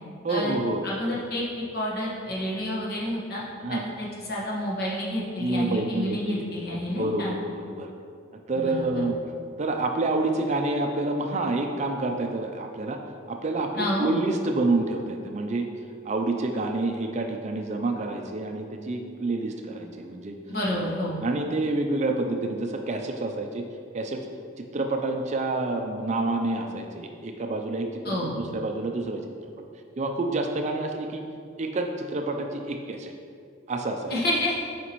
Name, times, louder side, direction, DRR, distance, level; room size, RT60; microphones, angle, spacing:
voice 1, 0.2-0.8 3.6-3.8 5.4-6.4 6.7-7.9 8.5-9.2 9.6-13.0 13.3-15.7 16.0-20.4 20.7-20.9 21.2-23.6 23.9-24.3 24.6-29.2 30.0-31.2 31.6-33.1 33.7-34.2, right 2 dB, 35° right, 4 dB, 0.4 m, -28 dB
voice 2, 0.8-3.4 3.7-7.3 8.6-9.0 13.8-14.1 20.5-21.2 28.0-28.4 34.1-34.6, left 1 dB, 50° left, -5 dB, 1.4 m, -29 dB
8.2 x 5.0 x 3.0 m, 2.3 s
head